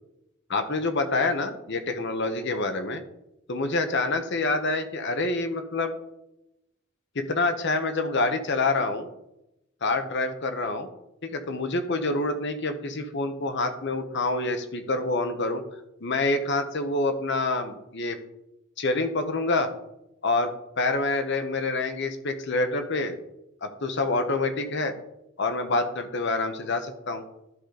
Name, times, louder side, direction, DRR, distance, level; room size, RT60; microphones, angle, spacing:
voice 1, 0.5-3.0 3.5-5.9 7.1-9.1 9.8-10.9 11.2-15.6 16.0-18.2 18.8-19.7 20.2-23.2 23.6-25.0 25.4-27.2, left 2 dB, 60° left, 8 dB, 1.0 m, -27 dB
12.0 x 5.0 x 3.9 m, 0.89 s
head